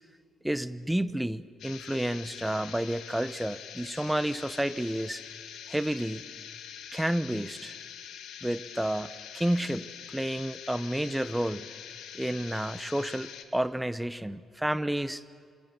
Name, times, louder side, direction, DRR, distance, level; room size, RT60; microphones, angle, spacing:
voice 1, 0.4-5.2 5.7-6.2 6.9-7.7 8.4-11.7 12.1-15.2, right 1 dB, 5° right, 14 dB, 1.0 m, -30 dB
sound 1, 1.6-13.4, left 9 dB, 80° left, 2.1 m, -44 dB
27.5 x 27.0 x 7.1 m, 2.2 s
cardioid pair, 90°, 0 cm